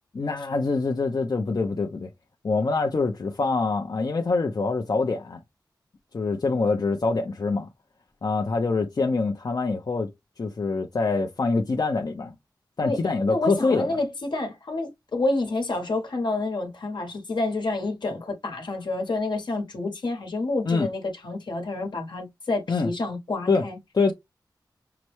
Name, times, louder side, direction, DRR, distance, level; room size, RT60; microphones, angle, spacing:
voice 1, 0.1-2.1 2.4-5.4 6.1-7.7 8.2-10.1 10.4-12.3 12.8-14.0 20.6-20.9 22.7-22.9 23.5-23.7 23.9-24.1, left 3 dB, 55° left, 0.7 m, -25 dB
voice 2, 13.3-23.8, left 2 dB, 75° left, 1.3 m, -28 dB
5.8 x 2.1 x 3.1 m
wide cardioid pair, 60°, 8 cm